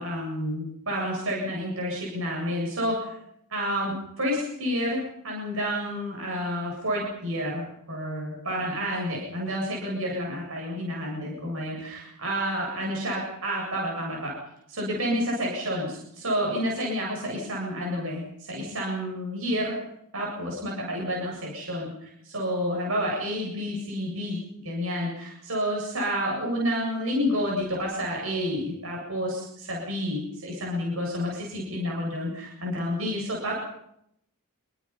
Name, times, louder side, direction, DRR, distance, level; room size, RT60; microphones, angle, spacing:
voice 1, 0.0-3.2 3.5-14.3 14.7-19.8 20.1-33.6, equal, 65° right, -2 dB, 7.5 m, -30 dB
28.5 x 22.5 x 5.7 m, 0.76 s
head